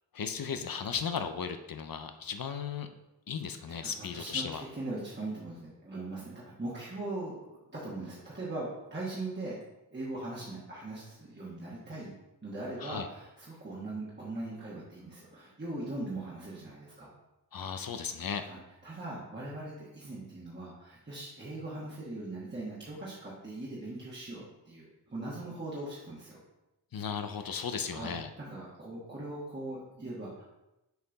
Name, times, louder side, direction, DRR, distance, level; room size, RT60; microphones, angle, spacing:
voice 1, 0.1-2.9 3.3-4.6 12.8-13.1 17.5-18.4 26.9-28.3, left 6 dB, 55° left, 8 dB, 0.6 m, -36 dB
voice 2, 3.7-9.6 9.9-12.1 12.4-17.1 18.4-26.4 27.9-30.4, right 2 dB, 25° right, -7 dB, 1.4 m, -40 dB
6.8 x 4.3 x 4.0 m, 0.94 s
wide cardioid pair, 120°, 41 cm